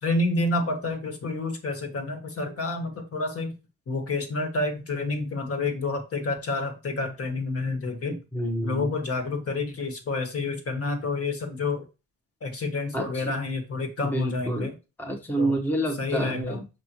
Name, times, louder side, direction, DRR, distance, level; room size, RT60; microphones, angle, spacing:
voice 1, 0.0-3.5 3.9-8.1 8.6-11.8 12.4-14.7 15.4-15.6 16.0-16.6, left 3 dB, 35° left, 4 dB, 1.7 m, -29 dB
voice 2, 8.3-8.9 12.9-13.3 14.0-14.7 15.0-16.6, right 1 dB, 5° left, 1 dB, 1.1 m, -28 dB
6.8 x 5.3 x 3.0 m, 0.28 s
cardioid pair, 140°, 39 cm